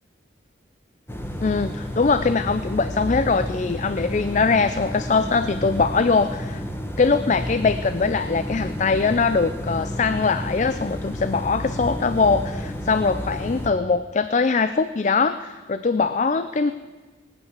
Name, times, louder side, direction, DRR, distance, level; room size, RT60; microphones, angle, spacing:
sound 1, 1.1-13.7, equal, 15° left, 1.3 m, -31 dB
voice 1, 1.4-6.6 7.0-16.7, left 4 dB, 40° left, 12 dB, 0.4 m, -22 dB
19.5 x 8.9 x 8.1 m, 1.4 s
head